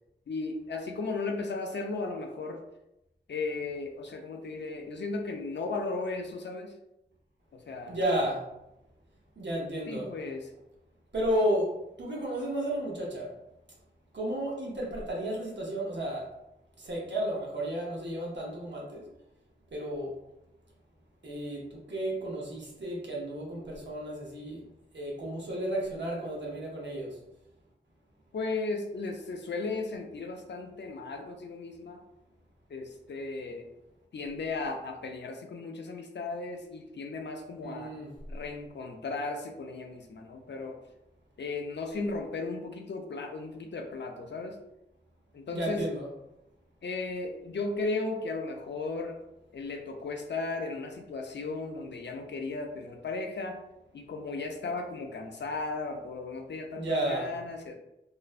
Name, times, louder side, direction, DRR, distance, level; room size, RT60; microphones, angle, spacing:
voice 1, 0.3-2.6 3.3-6.7 7.5-8.0 9.9-10.5 28.3-32.0 32.7-33.7 34.1-37.9 38.3-40.8 41.4-44.6 45.3-45.8 46.8-49.2 49.5-53.6 53.9-57.8, left 3 dB, 70° left, 4 dB, 0.4 m, -35 dB
voice 2, 7.9-8.5 9.4-10.1 11.1-11.7 12.0-13.3 14.1-16.3 16.8-19.0 19.7-20.1 21.2-24.6 24.9-27.2 37.6-38.1 45.5-46.1 56.7-57.3, right 1 dB, 75° right, -3 dB, 0.7 m, -32 dB
2.4 x 2.1 x 2.4 m, 0.88 s
wide cardioid pair, 65°, 19 cm